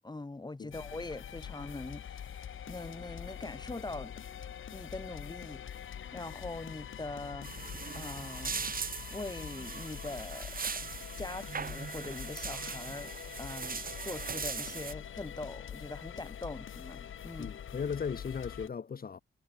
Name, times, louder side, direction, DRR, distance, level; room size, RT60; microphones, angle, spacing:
voice 1, 0.0-4.3 4.7-7.5 7.9-8.7 9.1-10.6 11.2-17.5, left 2 dB, 20° left, 3.1 m, -43 dB
sound 1, 0.7-18.7, left 9 dB, 75° left, 4.5 m, -44 dB
sound 2, 7.4-14.9, right 5 dB, 45° right, 2.3 m, -40 dB
voice 2, 17.4-19.2, left 6 dB, 45° left, 1.5 m, -37 dB
cardioid pair, 90°, 20 cm